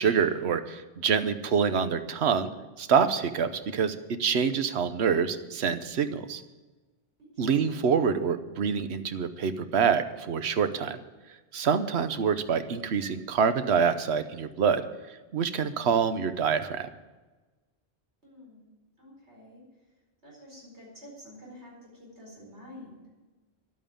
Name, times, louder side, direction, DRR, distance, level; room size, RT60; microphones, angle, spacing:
voice 1, 0.0-2.5 2.8-6.4 7.4-11.0 11.5-14.9 15.3-16.9, right 6 dB, 75° right, 10 dB, 1.1 m, -26 dB
voice 2, 7.2-7.9 18.2-18.7 19.0-19.6 20.2-23.1, left 1 dB, 90° right, -3 dB, 5.0 m, -49 dB
11.0 x 9.0 x 8.6 m, 1.2 s
omnidirectional pair, 1.1 m